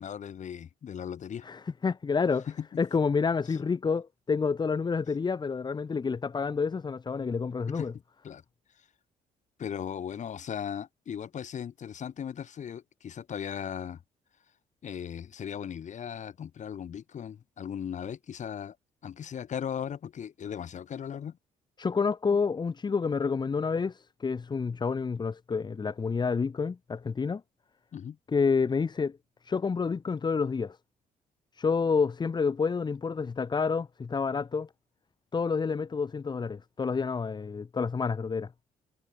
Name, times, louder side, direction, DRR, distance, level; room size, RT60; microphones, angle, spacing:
voice 1, 0.0-1.5 2.5-2.6 7.7-7.9 8.2-8.4 9.6-14.0 14.8-18.7 19.0-21.4 27.9-28.2, left 8 dB, 50° left, 1.7 m, -37 dB
voice 2, 1.4-2.5 2.8-7.9 21.8-27.4 28.3-29.2 29.4-30.8 31.6-34.7 35.3-38.5, left 5 dB, 30° left, 0.8 m, -29 dB
supercardioid pair, 70°, 15 cm